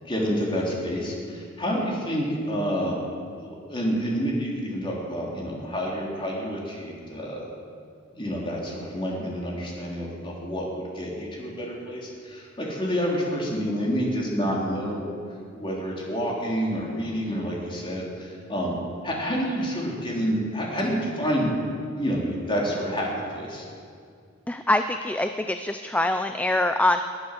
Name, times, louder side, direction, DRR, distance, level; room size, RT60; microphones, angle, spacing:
voice 1, 0.0-3.0 3.4-7.4 8.1-15.1 15.5-18.7 19.0-21.5 21.9-23.1 23.3-23.7, equal, 25° left, -3 dB, 3.2 m, -28 dB
voice 2, 24.5-27.0, left 2 dB, 5° left, 8 dB, 0.4 m, -24 dB
19.5 x 9.9 x 6.5 m, 2.3 s
head